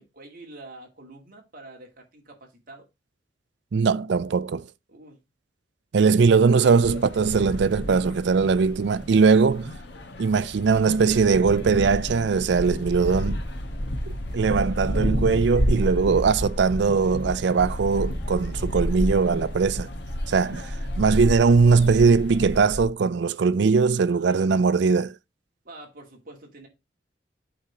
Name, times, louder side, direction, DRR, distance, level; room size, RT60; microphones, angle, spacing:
voice 1, 0.0-2.9 4.9-5.2 24.1-24.6 25.6-26.7, right 2 dB, 45° right, 2.2 m, -46 dB
voice 2, 3.7-4.7 5.9-9.7 10.2-13.4 14.3-19.9 20.3-25.2, right 5 dB, 65° right, 0.4 m, -20 dB
sound 1, 6.8-22.8, equal, 60° left, 1.3 m, -30 dB
8.5 x 3.8 x 4.4 m
head